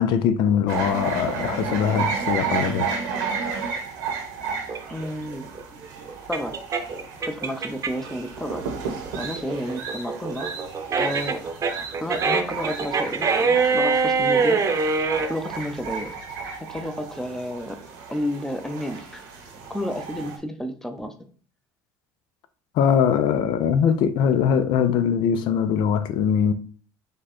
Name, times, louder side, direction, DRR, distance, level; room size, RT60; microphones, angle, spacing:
voice 1, 0.0-3.0 22.7-26.5, left 8 dB, 60° left, 0.5 m, -21 dB
sound 1, 0.7-20.4, right 5 dB, 90° right, 1.3 m, -33 dB
sound 2, 4.7-8.1 8.5-15.3, right 4 dB, 35° right, 0.8 m, -24 dB
voice 2, 4.9-5.5 6.3-6.6 7.3-8.6 9.2-10.5 11.0-11.4 12.0-14.6 15.3-16.1 16.6-17.8 18.1-19.2 19.7-21.1, equal, 5° left, 0.7 m, -31 dB
5.0 x 2.3 x 4.3 m
supercardioid pair, 90°, 9 cm